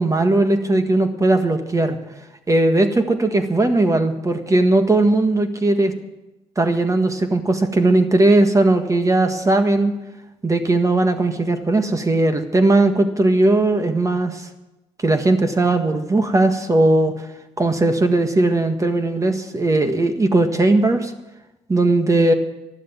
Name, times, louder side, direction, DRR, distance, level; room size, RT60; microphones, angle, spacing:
voice 1, 0.0-2.0 2.5-5.9 6.6-9.9 10.4-14.5 15.0-17.1 17.6-21.1 21.7-22.3, right 2 dB, 25° right, 7 dB, 1.6 m, -18 dB
13.0 x 12.0 x 7.2 m, 0.99 s
supercardioid pair, 70°, 13 cm